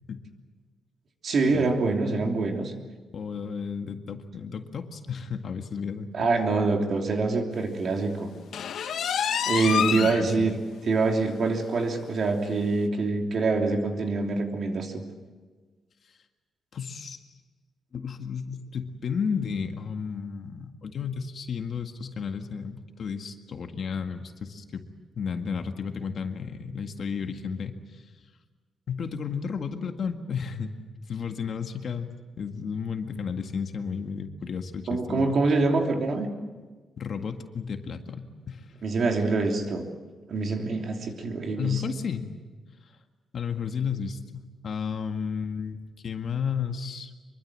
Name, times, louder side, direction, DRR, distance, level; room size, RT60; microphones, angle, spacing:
voice 1, 1.2-2.7 6.1-8.3 9.4-10.6 10.8-15.0 34.9-36.3 38.8-39.9 40.3-41.8, right 3 dB, 50° right, 3 dB, 3.1 m, -25 dB
voice 2, 3.1-6.1 9.6-10.6 16.7-17.2 17.9-24.8 25.2-28.0 28.9-30.7 31.1-35.4 37.0-38.7 41.6-42.3 43.3-47.1, left 6 dB, 50° left, 6 dB, 1.8 m, -33 dB
sound 1, 8.5-10.2 10.7-10.8 11.2-11.3 11.7-11.8 12.7-12.8, left 8 dB, 70° left, 1.4 m, -27 dB
25.0 x 23.5 x 7.6 m, 1.4 s
wide cardioid pair, 150°, 0 cm